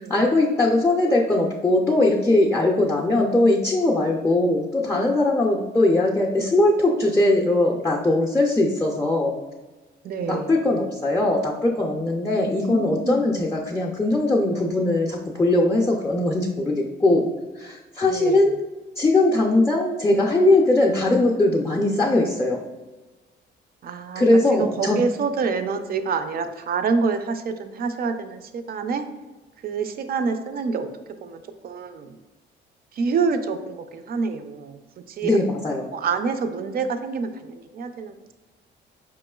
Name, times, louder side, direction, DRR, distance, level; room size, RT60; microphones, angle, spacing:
voice 1, 0.0-9.3 10.3-17.3 17.6-18.5 19.0-22.6 24.1-25.0 35.2-35.8, left 2 dB, 15° left, -2 dB, 0.4 m, -20 dB
voice 2, 10.0-10.5 12.4-13.2 18.1-18.5 23.8-29.1 29.6-30.9 31.2-32.2 32.9-34.8 35.1-35.4 35.9-38.3, right 5 dB, 50° right, 8 dB, 0.4 m, -27 dB
4.7 x 3.0 x 2.3 m, 1.2 s
cardioid pair, 90°, 20 cm